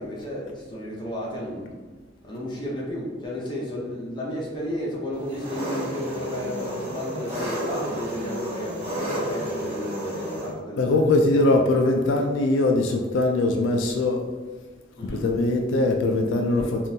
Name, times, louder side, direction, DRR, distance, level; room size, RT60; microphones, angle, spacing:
voice 1, 0.0-1.8 2.2-11.0 15.0-15.2 16.5-16.7, equal, 25° left, -4 dB, 0.7 m, -33 dB
Engine, 5.2-10.5, equal, 30° right, 1.3 m, -31 dB
voice 2, 10.8-14.3 15.0-16.9, left 2 dB, 75° left, 2 dB, 0.3 m, -21 dB
3.7 x 2.5 x 2.7 m, 1.3 s
head